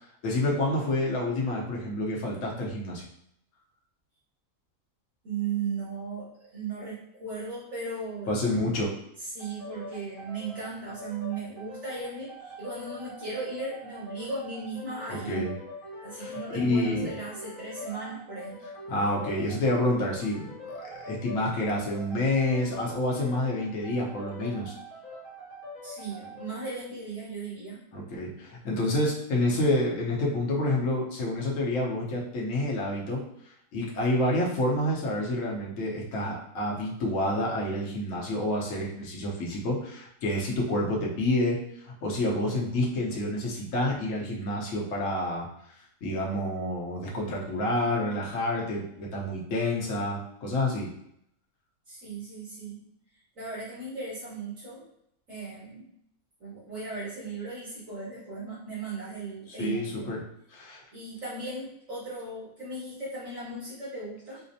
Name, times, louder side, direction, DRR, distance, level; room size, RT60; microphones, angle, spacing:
voice 1, 0.2-3.1 8.3-8.9 15.1-15.5 16.1-17.1 18.9-20.5 20.8-24.7 27.9-33.2 33.7-41.6 41.8-45.5 46.0-50.9 59.5-60.2 60.5-60.8, left 1 dB, 65° left, -3 dB, 1.2 m, -28 dB
voice 2, 5.2-8.3 9.2-15.5 16.0-18.6 25.8-27.8 51.9-52.8 53.4-54.8 55.3-55.9 56.4-60.1 60.9-64.4, right 3 dB, 70° right, -12 dB, 2.0 m, -37 dB
sound 1, 9.4-26.8, left 1 dB, 85° left, 1.4 m, -44 dB
4.9 x 2.1 x 2.7 m, 0.74 s
omnidirectional pair, 1.5 m